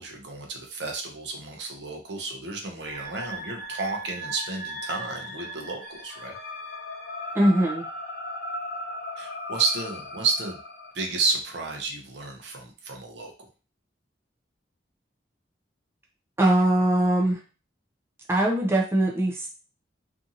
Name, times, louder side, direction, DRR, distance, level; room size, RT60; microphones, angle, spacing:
voice 1, 0.0-6.3 9.2-10.6 10.9-13.5, right 4 dB, 65° right, 2 dB, 0.7 m, -31 dB
sound 1, 2.8-10.9, equal, 55° left, 0.5 m, -37 dB
voice 2, 7.3-7.9 16.4-17.4 18.3-19.5, right 1 dB, 15° right, -1 dB, 0.4 m, -21 dB
2.7 x 2.5 x 2.6 m, 0.34 s
head